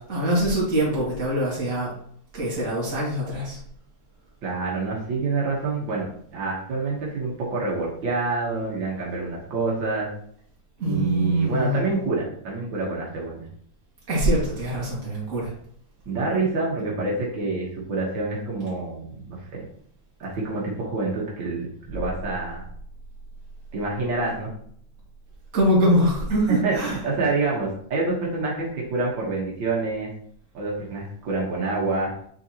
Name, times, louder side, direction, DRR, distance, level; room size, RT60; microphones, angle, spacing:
voice 1, 0.0-1.9 2.3-3.6 10.8-12.0 14.1-15.5 25.5-27.0, right 1 dB, 45° right, -5 dB, 2.5 m, -23 dB
voice 2, 4.4-10.1 10.8-13.5 16.1-19.6 20.2-22.6 23.7-24.5 26.5-30.1 30.5-32.1, right 3 dB, 80° right, -4 dB, 2.1 m, -27 dB
8.1 x 3.9 x 2.9 m, 0.63 s
omnidirectional pair, 2.0 m